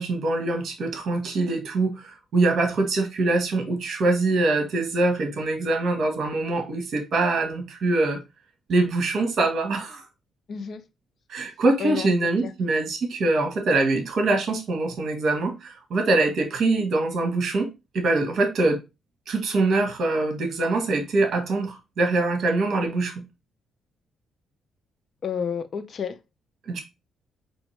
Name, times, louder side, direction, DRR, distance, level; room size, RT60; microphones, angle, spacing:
voice 1, 0.0-8.2 8.7-10.1 11.3-17.7 17.9-18.8 19.3-23.2 26.7-26.8, right 2 dB, 60° right, 1.3 m, -24 dB
voice 2, 10.5-10.8 11.8-12.1 12.4-12.5 25.2-26.2, left 7 dB, 50° left, 0.5 m, -30 dB
4.3 x 3.0 x 3.1 m
cardioid pair, 115°, 0 cm